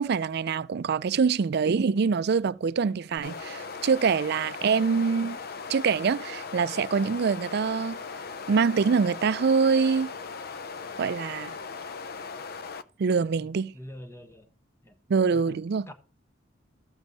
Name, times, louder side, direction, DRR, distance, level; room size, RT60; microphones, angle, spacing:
voice 1, 0.0-5.4 5.7-8.0 8.5-10.1 11.0-11.5 13.0-13.7 15.1-15.9, right 5 dB, 60° right, 0.4 m, -25 dB
sound 1, 3.2-12.8, left 5 dB, 55° left, 0.6 m, -38 dB
voice 2, 13.4-14.5 14.8-15.0 15.3-15.6 15.9-16.0, left 1 dB, 15° left, 1.1 m, -45 dB
13.5 x 7.1 x 4.1 m
head